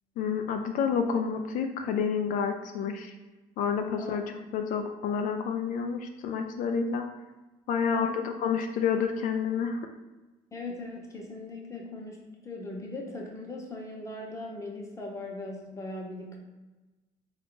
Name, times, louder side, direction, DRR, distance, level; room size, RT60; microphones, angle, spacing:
voice 1, 0.2-3.1 3.6-7.1 7.7-9.9, left 6 dB, 65° left, 5 dB, 0.4 m, -29 dB
voice 2, 7.8-8.2 10.5-16.4, left 2 dB, 20° left, 0 dB, 0.8 m, -39 dB
3.7 x 2.4 x 3.7 m, 1.1 s
cardioid pair, 110°, 15 cm